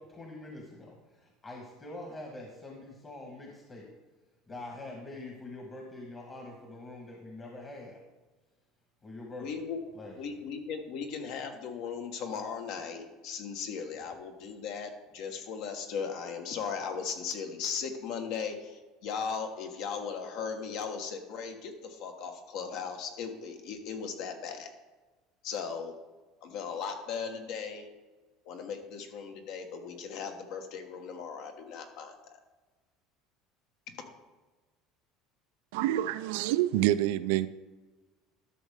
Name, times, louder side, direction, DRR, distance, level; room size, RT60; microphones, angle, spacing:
voice 1, 0.0-3.9 4.5-8.0 9.0-9.7 9.9-10.3, left 2 dB, 25° left, 0 dB, 1.4 m, -45 dB
voice 2, 9.4-9.8 10.2-24.7 25.4-25.9 26.4-27.9 28.4-32.1, left 6 dB, 60° left, 5 dB, 1.3 m, -37 dB
voice 3, 35.7-37.5, right 14 dB, 85° right, 13 dB, 0.3 m, -27 dB
12.5 x 6.4 x 3.6 m, 1.3 s
cardioid pair, 145°, 0 cm